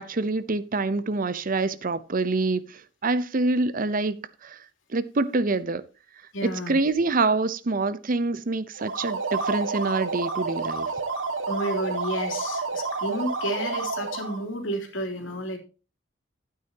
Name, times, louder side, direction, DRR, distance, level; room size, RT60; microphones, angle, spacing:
voice 1, 0.0-4.6 4.9-5.8 6.7-10.9, right 3 dB, 45° right, 0.7 m, -26 dB
voice 2, 6.3-6.8 11.5-15.6, equal, 80° left, 3.1 m, -31 dB
sound 1, 8.7-14.4, right 4 dB, 90° right, 1.8 m, -30 dB
12.0 x 9.4 x 2.9 m
head